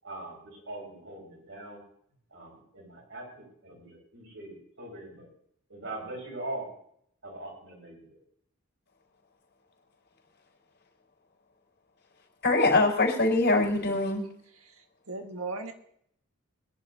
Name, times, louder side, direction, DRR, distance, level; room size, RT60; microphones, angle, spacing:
voice 1, 0.0-1.8 2.3-5.3 5.7-6.7 7.2-8.2, right 2 dB, 60° right, 0 dB, 5.6 m, -41 dB
voice 2, 12.4-14.2, left 2 dB, 50° left, -2 dB, 4.7 m, -23 dB
voice 3, 14.8-15.7, right 3 dB, 80° right, 6 dB, 1.5 m, -37 dB
22.0 x 11.0 x 2.7 m, 0.67 s
head